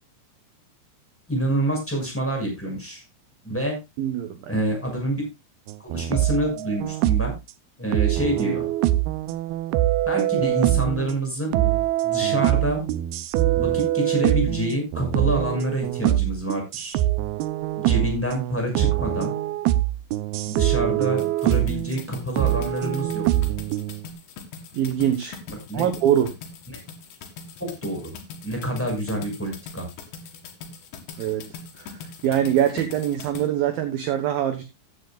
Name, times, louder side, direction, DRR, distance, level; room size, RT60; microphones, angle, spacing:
voice 1, 1.3-3.0 3.4-3.8 4.5-5.2 5.8-7.3 7.8-8.7 10.1-11.6 12.0-12.8 13.6-17.0 17.8-19.3 20.5-23.2 25.7-25.9 26.7-26.8 27.6-28.0 28.4-29.9, right 1 dB, 5° left, 1 dB, 5.7 m, -27 dB
voice 2, 4.0-4.6 24.7-25.4 25.7-26.3 31.2-31.5 31.8-31.9 32.2-34.6, right 10 dB, 65° right, 8 dB, 2.6 m, -23 dB
sound 1, 5.7-7.4 7.9-11.2 11.5-22.0 22.4-24.0, right 14 dB, 80° right, 2.2 m, -23 dB
sound 2, 21.2-33.5, left 5 dB, 70° left, 4.1 m, -41 dB
15.0 x 10.5 x 2.4 m, 0.23 s
omnidirectional pair, 5.3 m